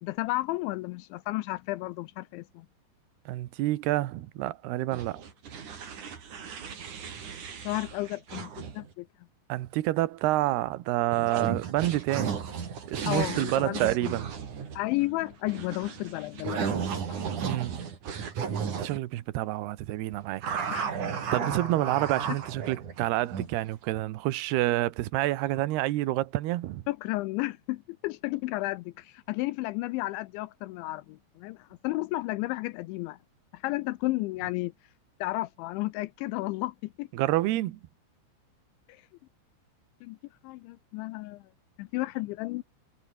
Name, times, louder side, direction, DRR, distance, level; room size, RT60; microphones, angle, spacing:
voice 1, 0.0-2.7 7.6-9.1 13.0-14.2 14.7-17.2 20.7-20.9 26.9-33.2 33.5-34.7 35.2-37.1 38.9-39.0 40.0-40.2 40.4-41.5 41.8-42.6, left 20 dB, 80° left, 2.8 m, -33 dB
voice 2, 3.3-5.2 9.5-12.4 12.9-14.3 17.4-17.8 18.7-20.6 21.3-26.8 37.1-37.8, right 16 dB, 70° right, 2.8 m, -28 dB
sound 1, 4.9-8.9 11.1-19.0 20.4-23.6, right 6 dB, 45° right, 4.2 m, -35 dB
omnidirectional pair, 5.6 m